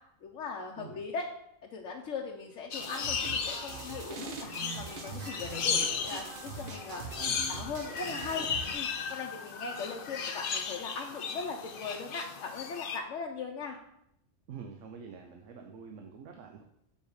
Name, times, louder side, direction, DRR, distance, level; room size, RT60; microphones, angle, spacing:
voice 1, 0.2-1.3 1.6-7.2 7.5-8.5 8.7-13.8, left 4 dB, 80° left, 0 dB, 1.1 m, -39 dB
sound 1, 2.7-13.0, left 6 dB, 55° left, 0.7 m, -36 dB
sound 2, 2.8-8.7, right 4 dB, 50° right, 1.0 m, -42 dB
voice 2, 8.0-8.6 14.5-16.6, right 6 dB, 80° right, 3 dB, 1.0 m, -46 dB
6.7 x 5.5 x 4.7 m, 0.77 s
omnidirectional pair, 1.3 m